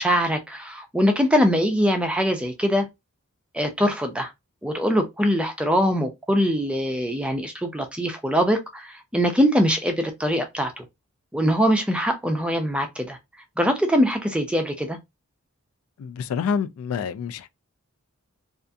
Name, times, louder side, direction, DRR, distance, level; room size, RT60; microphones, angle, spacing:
voice 1, 0.0-2.9 3.5-4.3 4.6-10.8 11.3-13.2 13.6-15.0, equal, 5° right, 0.4 m, -22 dB
voice 2, 16.0-17.5, left 6 dB, 70° left, 0.3 m, -27 dB
2.6 x 2.4 x 2.2 m
head